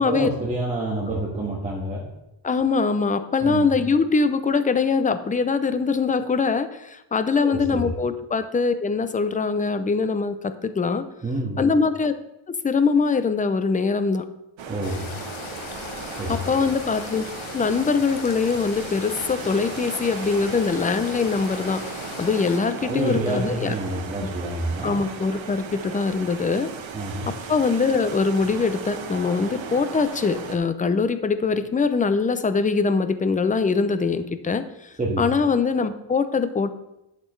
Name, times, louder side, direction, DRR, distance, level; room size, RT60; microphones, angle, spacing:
voice 1, 0.0-2.1 3.4-3.7 7.4-7.8 11.2-11.7 14.7-15.1 16.2-16.4 22.8-25.0 26.9-27.3 35.0-35.2, right 2 dB, 15° right, -5 dB, 1.5 m, -28 dB
voice 2, 2.4-11.1 11.6-12.1 12.5-14.3 16.3-17.2 17.5-23.7 24.8-26.7 27.3-36.7, left 4 dB, 20° left, 11 dB, 0.4 m, -23 dB
sound 1, 14.6-30.6, right 6 dB, 75° right, 1.1 m, -36 dB
sound 2, 14.8-22.6, left 7 dB, 85° left, 0.9 m, -38 dB
11.0 x 6.7 x 3.2 m, 0.91 s
wide cardioid pair, 155°, 47 cm